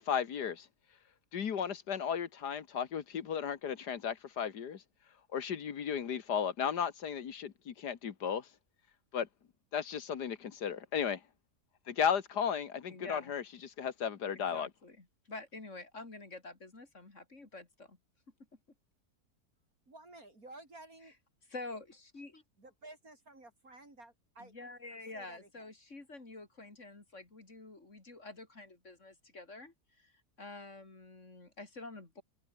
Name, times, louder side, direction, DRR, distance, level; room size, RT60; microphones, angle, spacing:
voice 1, 0.1-0.7 1.3-4.8 5.3-8.4 9.1-9.3 9.7-11.2 11.9-14.7, left 7 dB, 80° left, 2.0 m, -35 dB
voice 2, 12.9-13.3 14.3-18.0 21.5-22.4 24.4-30.1 30.4-32.2, left 2 dB, 45° left, 3.7 m, -48 dB
voice 3, 19.9-21.1 22.6-24.5 25.1-25.7, right 2 dB, 60° right, 6.7 m, -53 dB
omnidirectional pair, 1.7 m